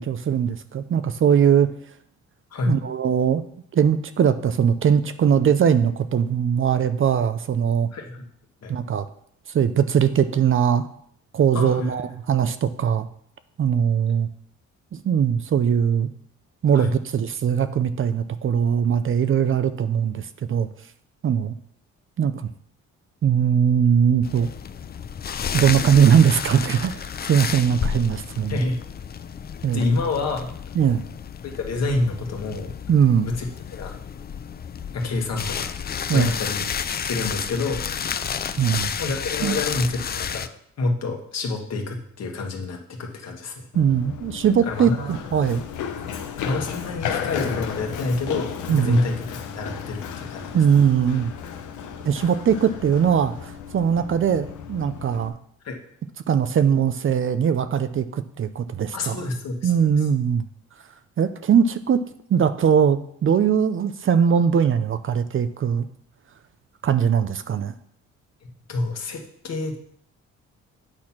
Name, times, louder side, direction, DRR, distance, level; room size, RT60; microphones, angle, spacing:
voice 1, 0.0-1.7 2.7-3.4 3.7-7.9 8.7-9.1 9.5-10.9 11.3-13.1 13.6-14.3 15.0-16.1 16.6-20.7 21.2-21.5 22.2-22.5 23.2-24.5 25.5-28.6 29.6-29.8 30.8-31.0 32.9-33.3 36.1-36.3 38.6-38.9 39.4-39.6 43.7-45.6 48.7-49.0 50.5-51.3 52.0-55.3 56.3-59.2 59.6-60.5 61.2-62.0 62.3-65.9 66.8-67.7, right 8 dB, 45° right, 11 dB, 0.6 m, -20 dB
voice 2, 7.9-8.3 8.6-8.7 11.5-11.9 16.7-17.0 28.5-28.8 29.7-30.5 31.4-32.7 33.2-33.5 33.7-33.9 34.9-35.7 36.1-36.6 37.0-37.8 39.0-40.5 40.8-43.7 44.6-45.1 46.4-50.5 55.6-55.8 58.9-59.7 68.4-69.8, left 3 dB, 60° left, 2 dB, 1.7 m, -27 dB
sound 1, 24.2-40.5, left 7 dB, 30° left, 0.5 m, -31 dB
Run, 43.7-55.3, left 7 dB, 75° left, 0.9 m, -34 dB
8.9 x 4.2 x 5.9 m, 0.66 s
cardioid pair, 90°, 30 cm